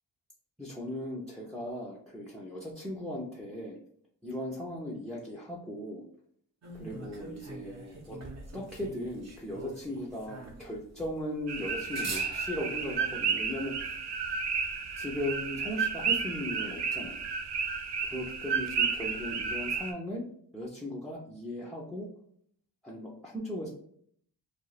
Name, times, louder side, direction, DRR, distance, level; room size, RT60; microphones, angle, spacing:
voice 1, 0.6-3.8 4.2-6.0 6.8-8.2 8.5-14.0 15.0-17.2 18.0-20.2 20.5-22.1 22.8-23.7, left 1 dB, ahead, -4 dB, 0.6 m, -37 dB
sound 1, 6.6-13.0, right 3 dB, 40° right, 0.8 m, -44 dB
sound 2, 11.5-19.9, right 6 dB, 75° right, 0.6 m, -32 dB
2.4 x 2.3 x 3.2 m, 0.64 s
cardioid pair, 75°, 41 cm